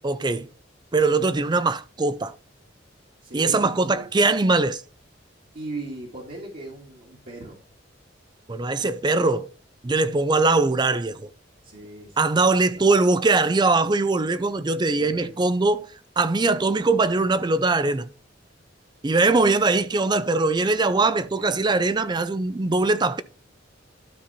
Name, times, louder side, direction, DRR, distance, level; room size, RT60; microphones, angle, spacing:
voice 1, 0.0-0.5 0.9-2.3 3.3-4.8 8.5-9.5 9.8-11.3 12.2-15.9 16.2-18.1 19.0-23.2, right 3 dB, 25° right, 0.5 m, -21 dB
voice 2, 3.2-4.1 5.5-7.6 11.6-12.2 12.8-13.1 15.0-15.5 21.2-21.6, right 2 dB, 50° right, 2.1 m, -38 dB
12.5 x 4.3 x 4.2 m
head